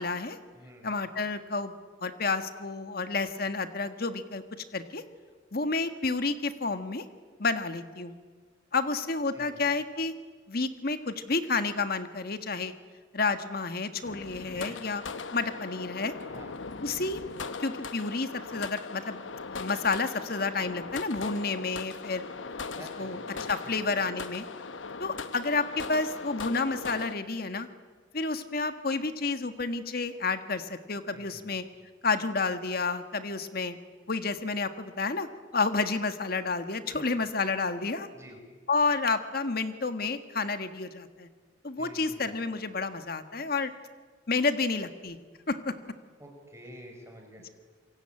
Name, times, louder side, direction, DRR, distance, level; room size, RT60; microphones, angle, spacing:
voice 1, 0.0-0.4 0.8-1.7 2.0-4.4 4.7-5.0 5.5-7.0 7.4-8.1 8.7-10.1 10.5-12.7 13.1-15.0 15.3-16.1 16.8-17.2 17.6-19.2 19.5-22.2 23.0-23.2 23.5-24.4 25.0-27.7 28.1-31.6 32.0-33.8 34.1-35.3 35.5-38.1 38.7-41.3 41.6-43.7 44.3-45.2 45.5-45.7, left 3 dB, 55° left, 9 dB, 1.6 m, -30 dB
voice 2, 0.5-0.9 9.3-9.6 14.4-14.8 16.3-16.6 22.8-24.0 31.1-31.7 37.0-37.1 38.1-38.4 41.8-42.5 46.2-47.5, equal, 15° right, 2 dB, 5.6 m, -49 dB
sound 1, 14.0-27.1, left 4 dB, 85° left, 1.0 m, -39 dB
27.5 x 24.0 x 8.9 m, 1.5 s
head